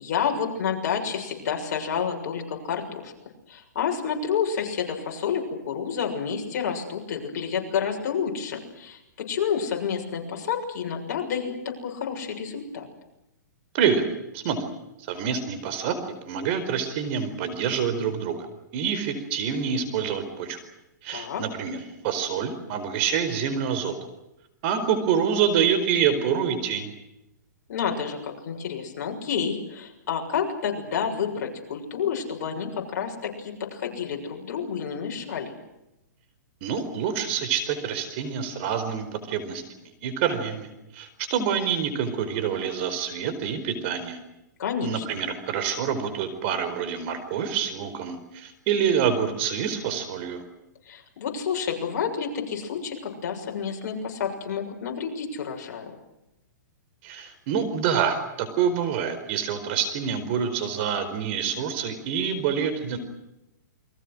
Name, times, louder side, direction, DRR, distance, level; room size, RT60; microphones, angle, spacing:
voice 1, 0.0-3.1 3.5-9.0 9.3-11.5 11.8-12.9 21.1-21.4 27.7-35.5 44.6-45.1 50.9-55.9, left 7 dB, 55° left, 2 dB, 7.0 m, -29 dB
voice 2, 15.1-16.0 16.3-18.4 18.7-20.6 21.0-23.9 24.6-26.9 36.6-39.6 40.0-44.2 44.8-50.4 57.0-63.0, right 7 dB, 40° right, 10 dB, 4.6 m, -26 dB
29.0 x 23.0 x 6.4 m, 0.92 s
hypercardioid pair, 150°, 10 cm